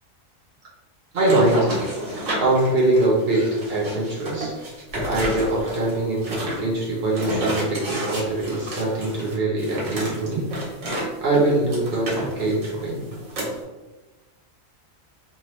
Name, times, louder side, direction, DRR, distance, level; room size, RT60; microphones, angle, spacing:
voice 1, 1.1-1.7 2.4-4.5 4.9-10.5 11.2-13.0, right 2 dB, 55° right, -3 dB, 0.9 m, -23 dB
sound 1, 1.2-11.1 11.3-13.6, right 1 dB, 85° right, 1.4 m, -30 dB
2.9 x 2.2 x 3.0 m, 1.1 s
omnidirectional pair, 1.3 m